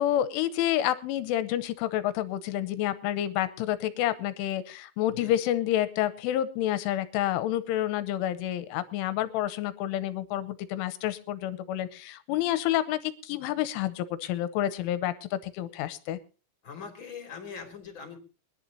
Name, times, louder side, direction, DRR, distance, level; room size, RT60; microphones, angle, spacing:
voice 1, 0.0-16.2, left 12 dB, 80° left, 13 dB, 3.2 m, -29 dB
voice 2, 5.1-5.5 16.6-18.2, left 6 dB, 30° left, 6 dB, 2.7 m, -42 dB
24.5 x 11.0 x 2.8 m, 0.35 s
omnidirectional pair, 6.0 m